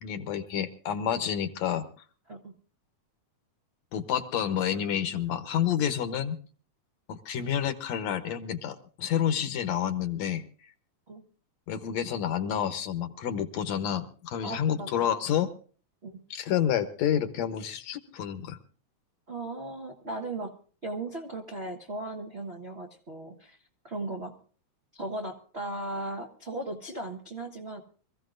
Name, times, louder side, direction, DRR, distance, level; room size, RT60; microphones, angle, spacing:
voice 1, 0.0-1.8 3.9-6.4 7.1-10.4 11.7-15.5 16.3-18.6, left 9 dB, 70° left, 9 dB, 2.2 m, -29 dB
voice 2, 14.4-15.2 16.0-16.2 19.3-20.5 20.8-23.6 23.8-24.4 24.9-27.8, right 2 dB, 45° right, 2 dB, 0.8 m, -37 dB
25.0 x 15.0 x 2.6 m, 0.41 s
omnidirectional pair, 3.4 m